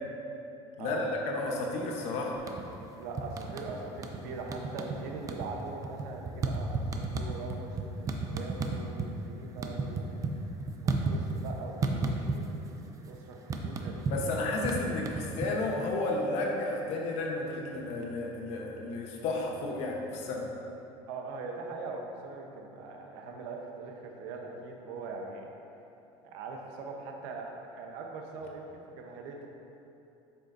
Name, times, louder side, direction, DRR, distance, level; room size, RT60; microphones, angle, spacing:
voice 1, 0.8-2.4 14.1-20.4, left 2 dB, 60° left, -1 dB, 1.1 m, -32 dB
sound 1, 2.3-2.8 3.2-4.2 4.5-5.0 5.2-9.1 9.4-11.5 11.8-12.7 12.9-15.8, right 3 dB, 25° right, 0.5 m, -32 dB
voice 2, 2.9-10.2 10.8-14.4 21.1-25.5 26.2-29.5, right 3 dB, 80° right, 1 dB, 1.0 m, -42 dB
8.0 x 6.5 x 2.7 m, 2.9 s
cardioid pair, 140°, 12 cm